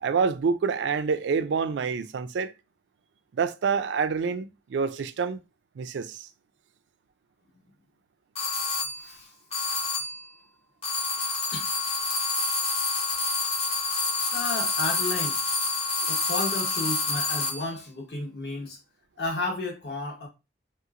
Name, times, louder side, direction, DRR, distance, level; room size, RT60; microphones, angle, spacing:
voice 1, 0.0-2.5 3.3-5.4 5.8-6.3, right 5 dB, 80° right, 0.3 m, -27 dB
sound 1, 8.4-9.1 9.5-10.3 10.8-17.7, left 3 dB, 35° left, 0.7 m, -28 dB
voice 2, 9.0-9.3 11.5-11.7 14.3-15.4 16.0-18.8 19.2-20.3, left 2 dB, 65° left, 1.2 m, -32 dB
3.3 x 2.9 x 2.4 m
head